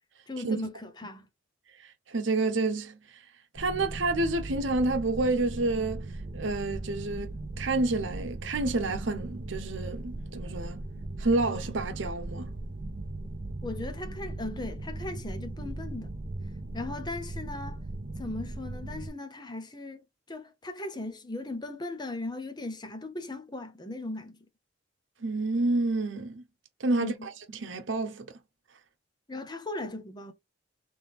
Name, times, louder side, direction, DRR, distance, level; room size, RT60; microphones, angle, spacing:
voice 1, 0.3-1.3 13.6-16.1 16.7-17.8 18.2-24.5 27.0-27.3 29.3-30.3, left 2 dB, 25° left, 0.7 m, -38 dB
voice 2, 1.8-3.0 3.5-6.0 6.3-10.8 11.2-12.5 25.2-26.4 26.8-27.3 27.6-28.3, right 2 dB, 80° right, 0.8 m, -29 dB
sound 1, 3.6-19.1, right 2 dB, 45° right, 0.6 m, -38 dB
3.6 x 3.3 x 4.2 m
head